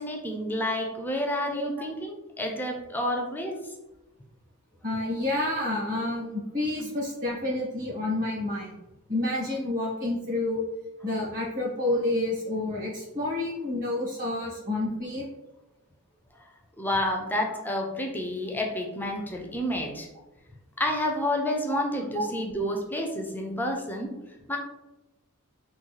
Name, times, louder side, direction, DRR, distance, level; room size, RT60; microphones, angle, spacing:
voice 1, 0.0-3.6 16.8-20.1 20.8-24.1 24.5-24.6, left 1 dB, 10° left, 2 dB, 0.4 m, -29 dB
voice 2, 4.8-8.7 9.1-10.6 11.0-15.2 21.7-21.8 22.1-22.3, left 2 dB, 40° right, -5 dB, 1.5 m, -29 dB
3.7 x 2.2 x 3.1 m, 0.98 s
head